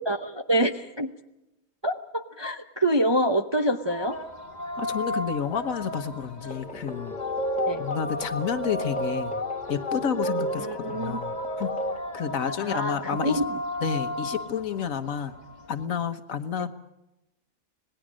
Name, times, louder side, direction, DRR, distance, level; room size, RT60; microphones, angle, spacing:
voice 1, 0.1-1.1 1.8-4.2 7.7-7.8 10.6-11.2 12.6-13.4, right 1 dB, 25° right, 5 dB, 0.6 m, -26 dB
sound 1, 3.8-15.8, left 2 dB, 30° left, 1.4 m, -35 dB
voice 2, 4.8-7.2 7.8-9.4 9.7-11.7 12.1-13.4 13.8-15.3 15.7-16.7, left 7 dB, 65° left, 9 dB, 1.5 m, -30 dB
sound 2, 6.5-12.0, right 1 dB, 5° left, 1.3 m, -33 dB
26.0 x 19.5 x 6.3 m, 0.94 s
omnidirectional pair, 1.6 m